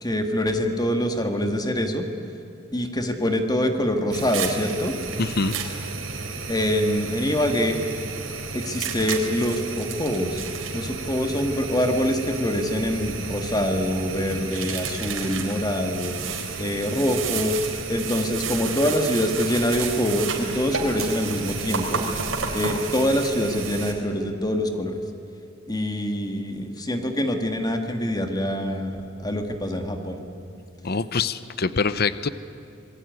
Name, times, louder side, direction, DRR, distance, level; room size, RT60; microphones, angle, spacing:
voice 1, 0.0-2.1 2.7-4.9 6.5-7.8 8.5-10.4 10.7-16.2 16.6-17.6 17.9-22.0 22.5-25.0 25.7-30.2, equal, 20° left, 5 dB, 1.9 m, -25 dB
sound 1, 4.1-23.9, right 4 dB, 85° right, 3.6 m, -31 dB
voice 2, 5.2-5.6 30.8-32.3, left 4 dB, 55° left, 15 dB, 0.8 m, -24 dB
27.5 x 21.0 x 9.4 m, 2.7 s
head